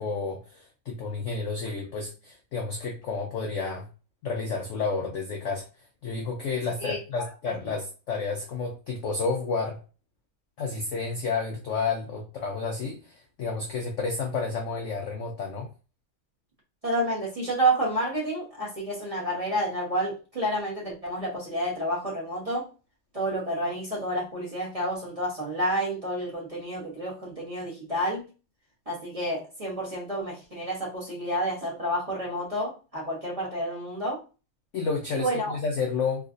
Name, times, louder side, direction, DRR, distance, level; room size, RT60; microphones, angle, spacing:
voice 1, 0.0-3.9 4.2-5.6 6.0-9.8 10.6-15.7 34.7-36.3, left 4 dB, 70° left, 1 dB, 0.7 m, -31 dB
voice 2, 6.8-7.3 16.8-22.7 23.1-28.2 28.9-34.2 35.1-35.5, right 1 dB, 25° right, -5 dB, 1.0 m, -29 dB
3.6 x 2.5 x 2.5 m, 0.32 s
omnidirectional pair, 2.0 m